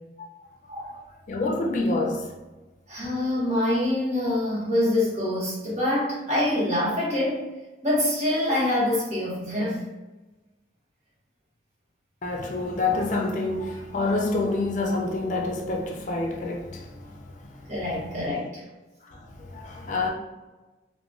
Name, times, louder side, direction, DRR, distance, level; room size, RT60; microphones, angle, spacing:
voice 1, 1.3-2.3 12.2-17.7 18.2-18.4 19.0-20.1, left 2 dB, 45° left, 0.5 m, -28 dB
voice 2, 2.9-7.4 7.8-9.8 17.7-18.7, left 1 dB, 40° right, 1.0 m, -25 dB
2.9 x 2.2 x 2.5 m
head